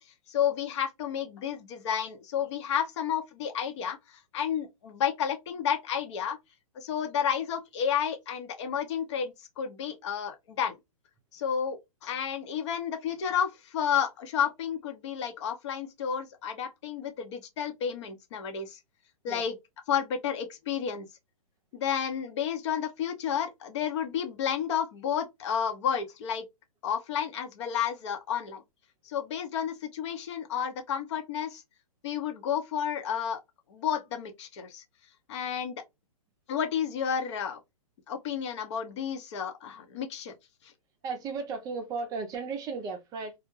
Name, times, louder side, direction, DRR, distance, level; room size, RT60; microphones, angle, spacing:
voice 1, 0.3-4.0 4.3-6.4 6.8-10.8 11.3-18.8 19.2-19.6 19.9-21.1 21.7-26.4 26.8-28.6 29.1-31.6 32.0-33.4 33.7-34.8 35.3-35.8 36.5-37.6 38.1-40.3, left 8 dB, 55° left, 0.7 m, -31 dB
voice 2, 41.0-43.3, right 4 dB, 20° right, 0.5 m, -35 dB
2.3 x 2.1 x 3.0 m
hypercardioid pair, 140°, 18 cm